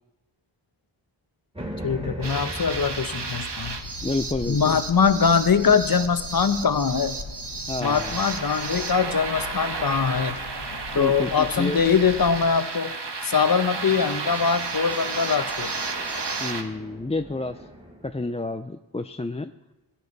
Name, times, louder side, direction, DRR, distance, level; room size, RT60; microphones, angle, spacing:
sound 1, 1.5-8.1 13.4-18.3, equal, 10° right, 2.5 m, -42 dB
voice 1, 1.8-3.8 4.5-7.2 7.8-10.4 10.9-12.9 13.2-15.7, left 6 dB, 45° left, 10 dB, 1.0 m, -22 dB
sound 2, 2.2-16.6, right 4 dB, 55° right, 1.4 m, -32 dB
Hammer, 3.6-12.5, left 3 dB, 60° left, 1.4 m, -41 dB
voice 2, 4.0-4.8 7.7-8.3 10.9-11.8 16.4-17.7 18.0-19.5, left 2 dB, 15° left, 8 dB, 0.4 m, -30 dB
17.0 x 10.5 x 4.1 m, 0.99 s
wide cardioid pair, 50°, 48 cm